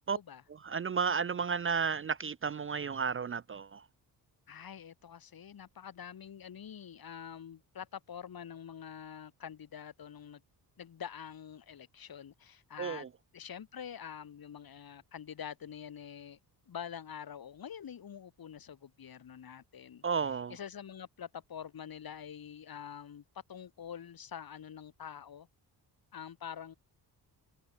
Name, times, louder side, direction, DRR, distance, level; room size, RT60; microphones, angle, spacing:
voice 1, 0.5-3.8 12.8-13.1 20.0-20.6, right 5 dB, 30° right, 0.5 m, -33 dB
voice 2, 4.5-10.4 10.8-13.1 13.3-16.4 16.7-20.0 20.5-23.2 23.5-25.5 26.1-26.7, left 8 dB, 60° left, 6.4 m, -46 dB
wide cardioid pair, 135°, 40 cm